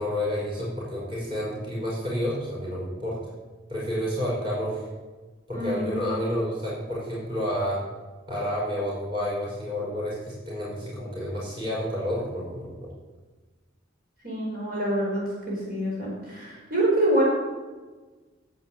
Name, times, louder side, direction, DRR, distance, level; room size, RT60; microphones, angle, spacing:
voice 1, 0.0-3.2 3.7-4.8 5.5-7.8 8.3-12.9, equal, 25° right, -6 dB, 5.2 m, -30 dB
voice 2, 5.5-6.0 14.2-17.2, right 1 dB, 50° right, -5 dB, 4.8 m, -26 dB
11.5 x 8.7 x 7.5 m, 1.3 s
head